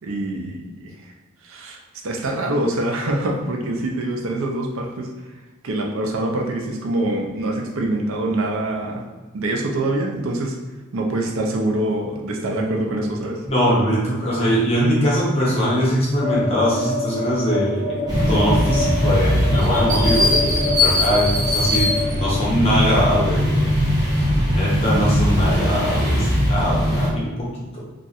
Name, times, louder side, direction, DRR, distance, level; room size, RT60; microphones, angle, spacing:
voice 1, 0.0-0.9 1.4-5.1 5.6-9.0 9.3-10.6 10.9-13.4, right 1 dB, 75° right, 1 dB, 0.5 m, -25 dB
voice 2, 13.5-23.6 24.3-27.8, equal, 30° left, -6 dB, 0.9 m, -21 dB
sound 1, 16.2-22.4, left 2 dB, 65° left, 0.5 m, -27 dB
sound 2, 18.1-27.1, left 1 dB, 15° right, 0.9 m, -20 dB
2.4 x 2.4 x 4.0 m, 1.3 s
head